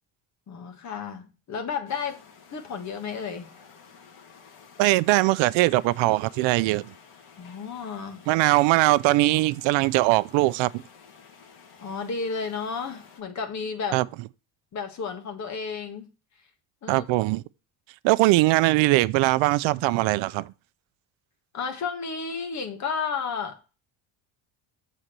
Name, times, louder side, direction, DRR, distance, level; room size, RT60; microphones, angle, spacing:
voice 1, 0.5-2.2 2.5-3.5 7.4-8.3 11.8-14.0 14.7-16.1 16.8-17.1 21.5-23.8, left 5 dB, 40° left, 1.6 m, -32 dB
sound 1, 1.9-13.2, left 6 dB, 55° left, 2.0 m, -52 dB
voice 2, 4.8-6.8 8.3-10.7 13.9-14.0 16.9-17.4 18.0-20.5, right 19 dB, 80° right, 0.5 m, -21 dB
7.4 x 4.2 x 6.6 m
cardioid pair, 155°, 44 cm